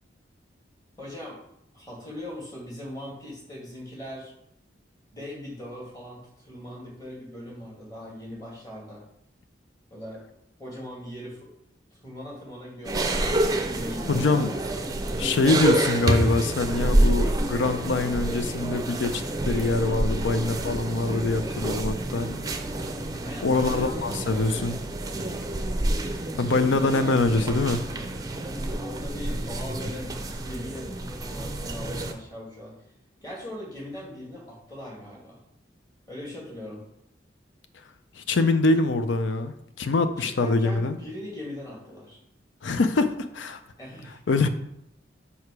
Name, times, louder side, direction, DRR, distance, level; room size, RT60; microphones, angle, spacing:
voice 1, 1.0-1.4 1.7-4.3 5.1-9.0 9.9-10.2 10.6-11.5 11.9-13.3 13.7-14.4 23.2-24.8 26.6-27.4 28.4-30.1 30.4-32.7 33.2-35.4 36.1-36.8 40.2-42.2 43.8-44.2, left 1 dB, 20° left, -3 dB, 1.9 m, -40 dB
sound 1, 12.8-32.1, right 1 dB, 20° right, 0.5 m, -28 dB
voice 2, 14.1-14.5 15.2-22.3 23.4-24.8 26.4-27.8 38.2-41.0 42.6-43.6 44.3-44.5, left 3 dB, 80° left, 9 dB, 0.5 m, -24 dB
5.6 x 4.8 x 4.7 m, 0.78 s
head